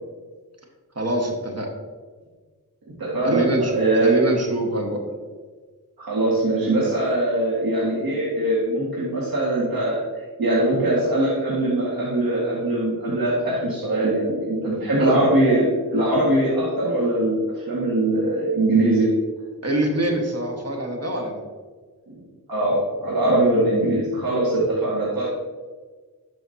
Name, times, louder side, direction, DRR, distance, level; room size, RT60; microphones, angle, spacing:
voice 1, 0.9-1.7 3.2-5.0 15.0-15.2 19.6-21.4, right 1 dB, 40° right, 2 dB, 1.6 m, -24 dB
voice 2, 3.0-4.2 6.0-10.0 10.4-19.1 22.5-25.2, right 1 dB, 65° right, -6 dB, 2.0 m, -21 dB
12.0 x 5.6 x 2.9 m, 1.4 s
cardioid pair, 55°, 38 cm